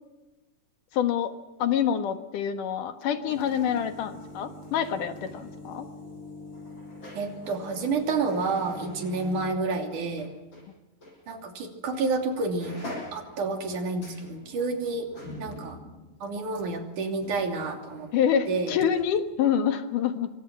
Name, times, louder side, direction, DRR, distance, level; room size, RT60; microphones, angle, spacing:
voice 1, 0.9-1.3 1.6-5.9 18.1-20.3, left 8 dB, 75° left, 8 dB, 3.1 m, -26 dB
sound 1, 2.9-10.7 11.0-11.2 11.9-12.1 12.4-18.9 19.1-19.2, left 1 dB, 35° left, 7.8 m, -44 dB
voice 2, 7.2-10.3 11.3-12.8 13.1-15.1 15.4-15.8 16.2-18.1 18.5-18.8, right 3 dB, 65° right, 4 dB, 4.5 m, -29 dB
27.5 x 24.5 x 6.2 m, 1.1 s
omnidirectional pair, 3.8 m